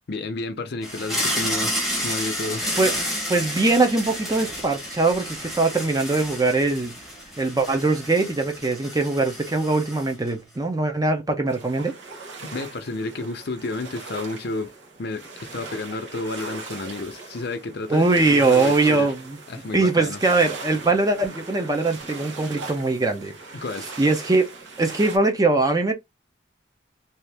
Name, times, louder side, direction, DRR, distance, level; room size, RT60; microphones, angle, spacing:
voice 1, 0.1-2.7 12.4-19.1 19.5-20.2 23.5-24.0, left 3 dB, 60° left, 0.6 m, -31 dB
sound 1, 0.8-10.3, equal, ahead, 1.0 m, -30 dB
voice 2, 3.3-6.9 7.4-11.9 17.9-19.4 19.7-23.3 24.0-24.5 24.8-25.9, right 3 dB, 20° right, 0.5 m, -21 dB
sound 2, 11.5-25.2, right 3 dB, 75° right, 1.0 m, -39 dB
2.8 x 2.4 x 3.3 m
head